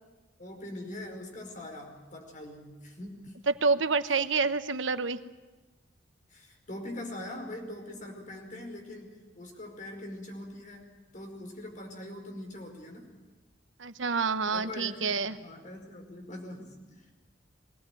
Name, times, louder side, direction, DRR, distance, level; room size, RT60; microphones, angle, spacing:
voice 1, 0.4-3.3 4.1-4.2 6.3-10.9 11.1-13.1 14.4-17.1, left 1 dB, 45° left, 2 dB, 5.0 m, -42 dB
voice 2, 3.6-5.2 13.8-15.4, right 4 dB, 85° right, 11 dB, 1.1 m, -28 dB
23.0 x 18.0 x 9.2 m, 1.2 s
head